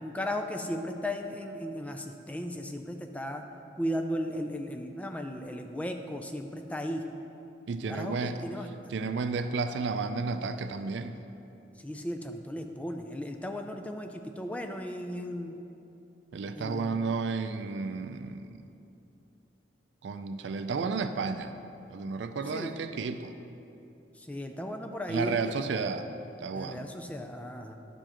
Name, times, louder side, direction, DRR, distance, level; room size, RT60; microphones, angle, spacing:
voice 1, 0.0-3.4 3.8-7.0 7.9-8.9 11.8-15.6 16.5-17.1 22.5-22.8 24.2-25.7 26.5-27.7, equal, 10° left, 4 dB, 0.3 m, -36 dB
voice 2, 7.7-8.4 8.9-11.2 16.3-18.6 20.0-21.6 21.9-23.3 25.1-26.1 26.4-26.9, right 4 dB, 75° right, 9 dB, 0.4 m, -32 dB
10.5 x 6.9 x 3.0 m, 2.8 s
head